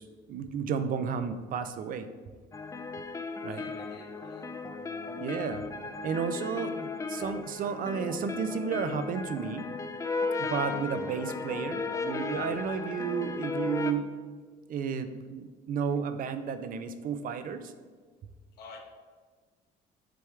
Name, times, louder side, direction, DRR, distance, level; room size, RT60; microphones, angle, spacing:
voice 1, 0.0-2.1 3.4-3.7 5.1-5.6 6.0-9.7 10.4-14.1 14.7-17.7, right 6 dB, 55° right, 10 dB, 0.5 m, -32 dB
sound 1, 2.5-13.9, left 4 dB, 20° left, 0.4 m, -35 dB
voice 2, 3.5-4.6 18.6-18.8, left 4 dB, 70° left, 2 dB, 1.2 m, -49 dB
7.6 x 3.5 x 4.6 m, 1.5 s
cardioid pair, 110°, 17 cm